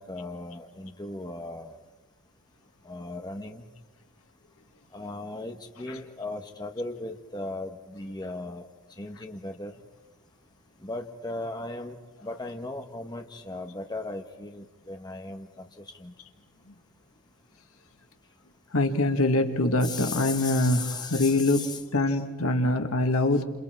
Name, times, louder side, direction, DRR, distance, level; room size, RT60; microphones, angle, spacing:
voice 1, 0.0-1.8 2.8-3.6 4.9-8.7 9.0-9.7 10.8-12.0 12.2-15.6 16.0-16.1 19.8-21.8, left 2 dB, 20° left, 4 dB, 1.3 m, -37 dB
voice 2, 18.7-23.4, left 2 dB, 80° left, 5 dB, 2.0 m, -24 dB
29.5 x 28.0 x 4.6 m, 1.1 s
head